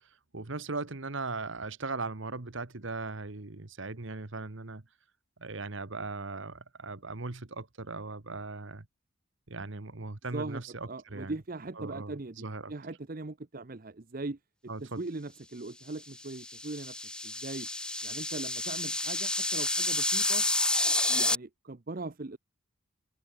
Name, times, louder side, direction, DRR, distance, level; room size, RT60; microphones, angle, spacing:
voice 1, 0.3-4.8 5.4-8.8 9.5-11.3 11.8-12.7 14.7-15.0, right 3 dB, 60° right, 1.4 m, -38 dB
voice 2, 10.3-14.4 14.8-17.7 18.0-20.5 20.8-22.4, right 2 dB, 40° right, 0.7 m, -40 dB
sound 1, 16.2-21.4, left 2 dB, 5° left, 0.5 m, -30 dB
head